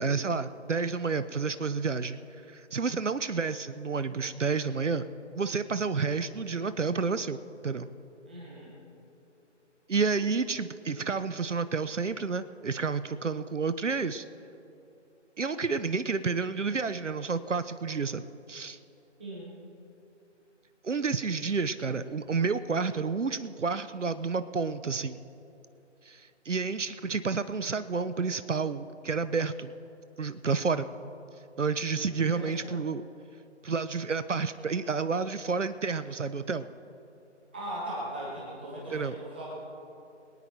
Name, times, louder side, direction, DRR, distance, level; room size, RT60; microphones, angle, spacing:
voice 1, 0.0-2.2 2.5-5.1 5.4-7.9 9.9-14.2 15.4-18.8 20.8-25.2 26.0-29.7 30.2-30.9 31.6-33.0 33.6-36.7 38.9-39.2, right 4 dB, 75° right, 13 dB, 0.7 m, -30 dB
voice 2, 8.2-8.7 19.2-19.5 31.9-32.7 37.5-39.5, right 1 dB, 10° right, -6 dB, 1.4 m, -39 dB
23.0 x 9.1 x 4.4 m, 2.9 s
figure-of-eight pair, 160°, 37 cm